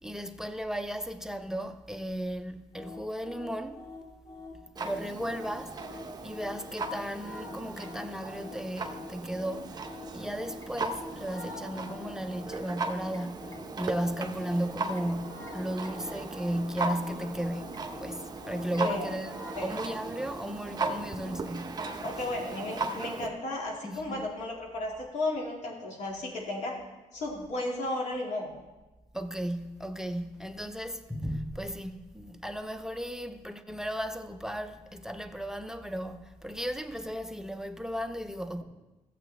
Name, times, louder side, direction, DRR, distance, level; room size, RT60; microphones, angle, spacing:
voice 1, 0.0-3.9 4.8-9.9 10.1-19.3 19.6-21.9 23.8-24.3 29.1-38.6, equal, 5° right, 0.4 m, -35 dB
sound 1, 2.7-19.8, left 3 dB, 25° left, 2.0 m, -46 dB
Clock, 4.8-23.3, right 3 dB, 30° right, 0.8 m, -38 dB
voice 2, 22.0-26.7 27.1-28.5, left 2 dB, 65° left, 2.3 m, -34 dB
14.0 x 7.6 x 3.4 m
cardioid pair, 120°, 13 cm